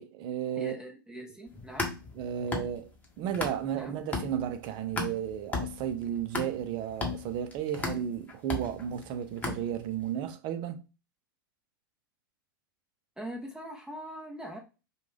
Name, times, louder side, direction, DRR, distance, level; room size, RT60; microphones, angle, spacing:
voice 1, 0.0-0.8 2.2-2.9 3.2-10.8, right 9 dB, 45° right, 0.6 m, -33 dB
voice 2, 0.6-1.9 3.7-3.9 13.2-14.6, right 1 dB, 5° right, 0.9 m, -42 dB
sound 1, 1.5-3.8 4.1-10.1, left 3 dB, 15° left, 1.2 m, -36 dB
5.0 x 2.4 x 3.3 m
hypercardioid pair, 100°, 11 cm